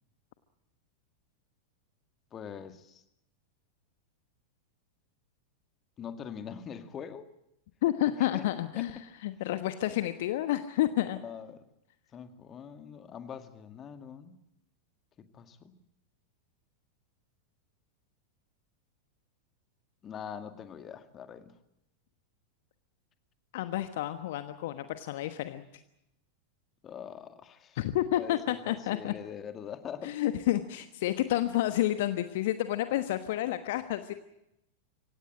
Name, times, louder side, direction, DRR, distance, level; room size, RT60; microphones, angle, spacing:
voice 1, 2.3-3.0 6.0-7.3 8.3-8.4 8.8-9.0 11.2-11.6 12.1-14.4 15.3-15.8 20.0-21.5 26.8-27.8 28.2-30.1, left 8 dB, 25° left, 9 dB, 2.0 m, -43 dB
voice 2, 7.8-11.2 23.5-25.6 27.8-29.1 30.0-34.1, left 13 dB, 55° left, 10 dB, 1.2 m, -30 dB
25.0 x 18.0 x 8.7 m, 0.85 s
figure-of-eight pair, 90°, 0 cm